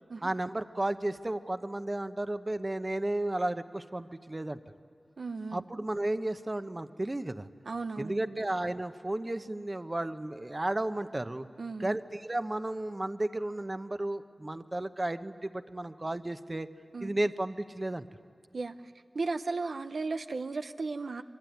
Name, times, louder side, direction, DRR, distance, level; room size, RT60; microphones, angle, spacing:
voice 1, 0.2-4.6 5.5-7.5 8.0-11.5 11.8-16.7 17.0-18.0, right 1 dB, 35° right, 10 dB, 0.9 m, -33 dB
voice 2, 5.2-5.8 7.7-8.4 11.6-12.0 16.9-17.1 18.5-18.8 19.1-21.2, right 3 dB, 85° right, 8 dB, 0.6 m, -35 dB
26.5 x 22.5 x 9.2 m, 2.2 s
wide cardioid pair, 50°, 0 cm